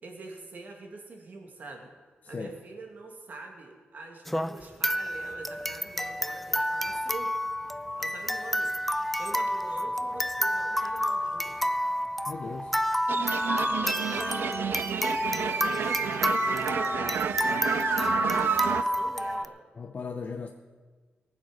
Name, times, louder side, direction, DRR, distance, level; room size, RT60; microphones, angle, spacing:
voice 1, 0.0-1.9 2.3-7.3 8.0-8.7 9.2-11.6 13.4-17.4 18.1-19.6, right 3 dB, 55° right, 1 dB, 2.4 m, -44 dB
sound 1, 4.3-19.5, left 1 dB, 5° left, 0.4 m, -29 dB
voice 2, 12.3-12.7 19.8-20.5, left 5 dB, 40° left, 5 dB, 0.7 m, -37 dB
sound 2, 13.1-18.8, right 7 dB, 75° right, 0.5 m, -30 dB
18.5 x 7.4 x 6.4 m, 1.4 s
wide cardioid pair, 120°, 4 cm